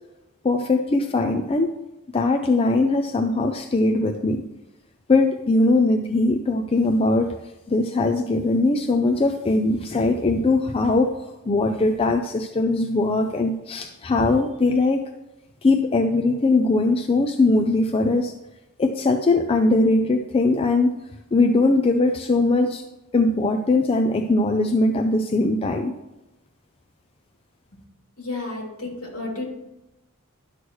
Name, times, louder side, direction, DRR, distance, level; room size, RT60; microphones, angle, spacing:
voice 1, 0.4-1.7 2.1-4.4 5.1-7.4 7.7-15.0 15.6-18.3 18.8-21.0 21.3-22.8 23.1-25.9, left 2 dB, 25° left, 4 dB, 0.4 m, -20 dB
voice 2, 28.2-29.4, left 2 dB, 70° left, -1 dB, 2.6 m, -32 dB
11.5 x 6.3 x 3.1 m, 0.97 s
head